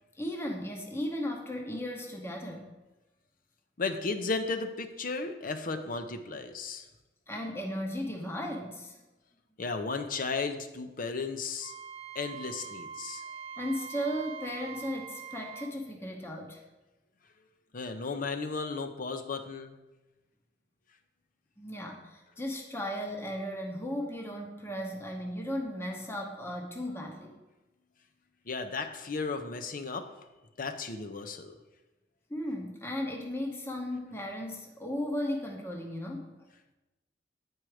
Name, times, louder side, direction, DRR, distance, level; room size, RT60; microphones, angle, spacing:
voice 1, 0.1-2.7 7.3-9.0 13.6-16.6 21.6-27.4 32.3-36.3, equal, 15° left, 2 dB, 0.8 m, -36 dB
voice 2, 3.8-6.9 9.6-11.7 12.1-13.2 17.7-19.8 28.5-30.1 30.6-31.5, left 4 dB, 50° left, 7 dB, 0.7 m, -34 dB
Wind instrument woodwind instrument, 11.6-15.7, right 7 dB, 35° right, 0.3 m, -43 dB
9.0 x 4.7 x 4.9 m, 1.1 s
head